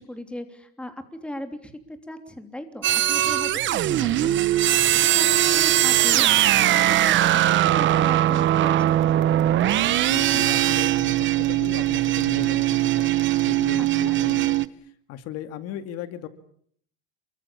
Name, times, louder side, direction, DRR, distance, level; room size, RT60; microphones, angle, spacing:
voice 1, 0.0-4.3 5.0-9.3 13.8-14.2, left 1 dB, 5° left, 7 dB, 3.2 m, -38 dB
sound 1, 2.8-14.7, right 13 dB, 40° right, 1.2 m, -20 dB
voice 2, 4.6-5.0 10.0-16.3, left 10 dB, 55° left, 10 dB, 2.4 m, -37 dB
28.5 x 24.0 x 7.2 m, 0.62 s
cardioid pair, 140°, 30 cm